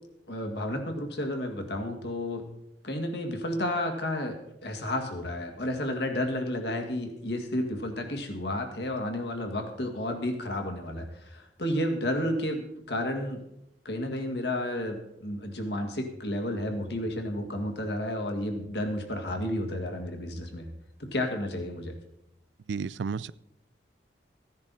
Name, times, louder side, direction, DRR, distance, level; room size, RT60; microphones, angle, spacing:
voice 1, 0.3-2.4 2.8-4.4 4.6-13.4 13.9-20.7 21.0-21.9, left 1 dB, 65° left, 4 dB, 1.9 m, -31 dB
voice 2, 22.7-23.3, right 5 dB, 80° right, 20 dB, 0.4 m, -32 dB
15.5 x 10.5 x 4.1 m, 0.82 s
head